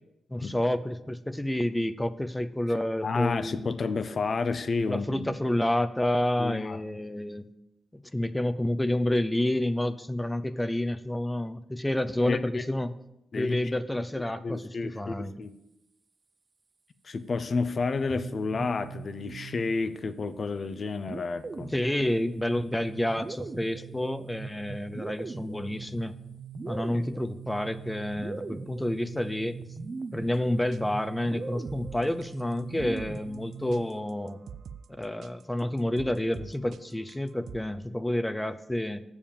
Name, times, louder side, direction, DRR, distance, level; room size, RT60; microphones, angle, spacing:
voice 1, 0.3-3.7 4.9-7.5 8.1-12.9 13.3-15.3 21.7-26.2 26.7-29.6 30.1-34.4 35.0-39.0, left 1 dB, 10° left, 12 dB, 0.6 m, -29 dB
voice 2, 3.0-5.3 6.4-6.8 12.3-12.6 13.3-13.6 14.4-15.5 17.0-21.7 26.9-27.0, left 4 dB, 50° left, 12 dB, 0.7 m, -30 dB
sound 1, 18.0-20.1 21.1-34.0, right 4 dB, 45° right, 0.8 m, -41 dB
sound 2, 30.3-30.4 30.7-30.8 31.3-37.6, right 7 dB, 75° right, 0.4 m, -45 dB
7.1 x 7.0 x 7.3 m, 0.86 s
cardioid pair, 65°, 0 cm